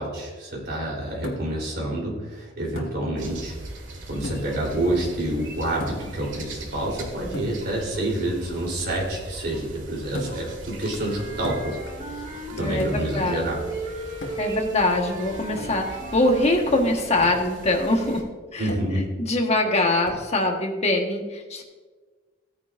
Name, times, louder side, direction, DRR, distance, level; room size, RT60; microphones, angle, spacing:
voice 1, 0.0-3.5 4.1-12.3 12.6-13.6 18.6-19.1, right 1 dB, 60° right, -2 dB, 3.6 m, -28 dB
sound 1, 1.2-1.7 2.8-3.0 4.2-4.6 5.8-6.2 7.3-7.6 10.1-10.5 11.4-11.9 12.8-13.2 14.2-14.6 15.6-15.8 17.2-17.5 18.7-19.0 20.0-20.3, left 1 dB, 90° left, 1.7 m, -35 dB
sound 2, 3.2-18.2, right 2 dB, 80° right, 1.8 m, -41 dB
Wind instrument woodwind instrument, 11.0-13.2 13.5-16.6, right 1 dB, 40° right, 2.0 m, -36 dB
voice 2, 12.5-13.5 14.4-18.3 18.5-18.7 19.2-21.6, left 2 dB, 35° left, 2 dB, 1.4 m, -23 dB
16.5 x 9.5 x 2.6 m, 1.4 s
head